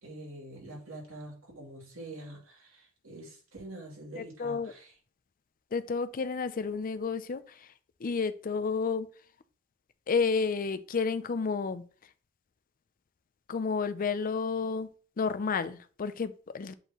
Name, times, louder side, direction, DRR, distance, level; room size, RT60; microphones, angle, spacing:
voice 1, 0.0-4.9, right 1 dB, 70° right, -2 dB, 2.8 m, -45 dB
voice 2, 4.2-4.7 5.7-7.7 8.0-9.1 10.1-11.8 13.5-14.9 15.2-16.7, left 5 dB, 40° left, 13 dB, 0.4 m, -31 dB
7.9 x 4.3 x 3.0 m, 0.41 s
head